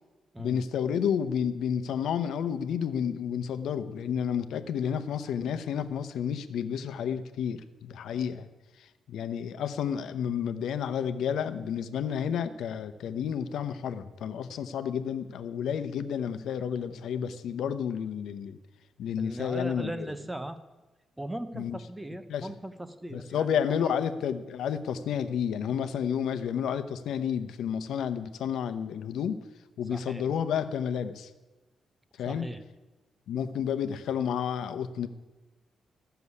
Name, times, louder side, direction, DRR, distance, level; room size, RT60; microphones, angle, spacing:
voice 1, 0.4-8.4 8.8-18.6 19.0-20.1 21.5-21.8 22.3-22.5 23.1-29.4 29.8-31.3 32.2-32.5 33.3-35.1, left 8 dB, 90° left, 10 dB, 0.8 m, -31 dB
voice 2, 19.2-20.6 21.2-23.9 29.9-30.3 32.3-32.6, right 1 dB, 5° right, 11 dB, 0.6 m, -38 dB
13.5 x 6.9 x 9.6 m, 1.2 s
wide cardioid pair, 180°, 0 cm